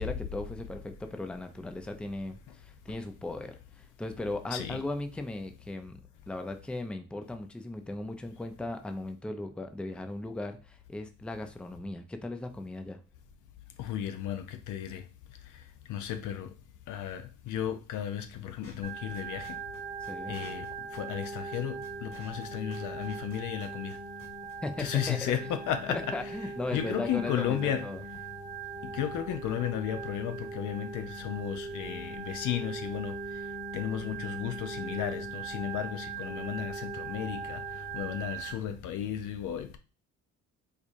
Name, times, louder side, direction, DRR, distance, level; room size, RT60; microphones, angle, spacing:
voice 1, 0.0-6.0 6.3-13.0 20.0-20.4 24.6-25.2 25.9-28.0, left 2 dB, 5° left, 0.4 m, -37 dB
voice 2, 13.8-15.0 15.9-16.5 16.9-19.5 20.3-20.7 20.9-24.0 24.8-26.2 26.7-27.9 28.9-33.2 33.7-37.6 37.9-39.8, left 10 dB, 85° left, 0.6 m, -34 dB
sound 1, 18.6-24.5, left 3 dB, 50° left, 1.6 m, -54 dB
Organ, 18.8-38.5, right 4 dB, 20° right, 1.0 m, -40 dB
4.5 x 2.4 x 2.5 m
cardioid pair, 90°, 30 cm